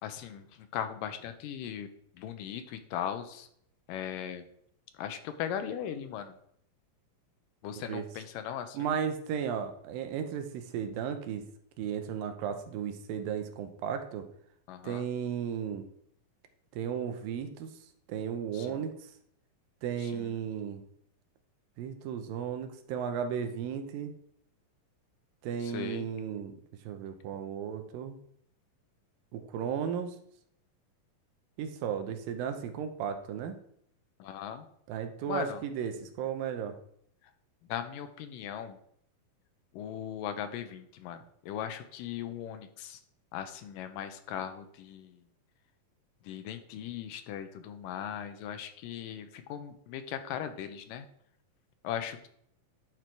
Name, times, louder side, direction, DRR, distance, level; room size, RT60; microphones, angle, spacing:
voice 1, 0.0-1.9 2.1-3.5 3.9-4.5 4.9-6.4 7.6-9.0 14.7-15.1 18.5-18.8 20.0-20.4 25.6-26.1 34.2-34.7 35.3-35.6 37.7-38.8 39.7-43.0 43.3-45.2 46.2-51.1 51.8-52.3, left 9 dB, 80° left, 9 dB, 2.2 m, -38 dB
voice 2, 8.7-11.4 11.8-14.3 14.8-15.8 16.7-17.7 18.1-19.1 19.8-20.8 21.8-24.1 25.4-26.5 26.8-28.2 29.3-30.2 31.6-33.6 34.9-36.7, right 8 dB, 85° right, 8 dB, 2.5 m, -35 dB
11.0 x 4.5 x 4.6 m, 0.69 s
omnidirectional pair, 4.1 m